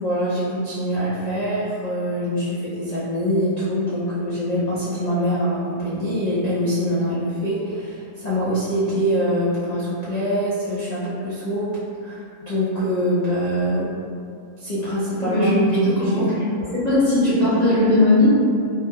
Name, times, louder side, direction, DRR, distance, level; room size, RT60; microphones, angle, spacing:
voice 1, 0.0-11.7 12.0-13.9 14.6-15.5 16.0-16.3, equal, 65° left, -10 dB, 0.4 m, -24 dB
voice 2, 15.2-16.3 16.7-18.3, left 1 dB, 35° right, -11 dB, 0.9 m, -18 dB
3.0 x 2.1 x 3.4 m, 2.4 s
omnidirectional pair, 1.5 m